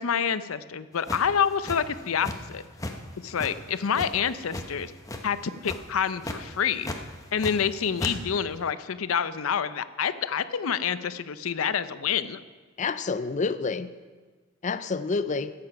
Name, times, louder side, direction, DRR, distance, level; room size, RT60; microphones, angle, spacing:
voice 1, 0.0-2.6 3.2-4.9 5.2-6.9 7.3-12.4, left 7 dB, 90° left, 14 dB, 0.6 m, -27 dB
sound 1, 1.1-2.5 2.8-3.0 3.4-4.7 5.0-5.4 5.6-5.9 6.2-6.4 6.8-7.7 8.0-8.1, left 1 dB, 15° left, 0.9 m, -34 dB
voice 2, 12.8-13.9 14.6-15.5, left 4 dB, 35° left, 13 dB, 0.5 m, -28 dB
14.0 x 8.7 x 5.8 m, 1.4 s
head